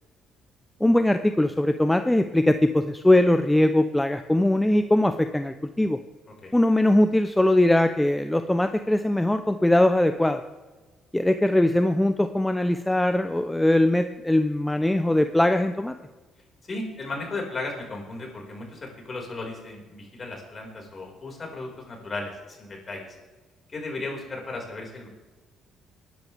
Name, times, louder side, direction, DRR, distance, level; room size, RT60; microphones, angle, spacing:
voice 1, 0.8-6.0 6.5-10.4 11.1-15.9, left 1 dB, 10° left, 9 dB, 0.7 m, -21 dB
voice 2, 16.7-23.1 23.7-25.1, left 2 dB, 40° left, 0 dB, 5.4 m, -35 dB
21.5 x 10.5 x 3.6 m, 1.2 s
hypercardioid pair, 55°, 0 cm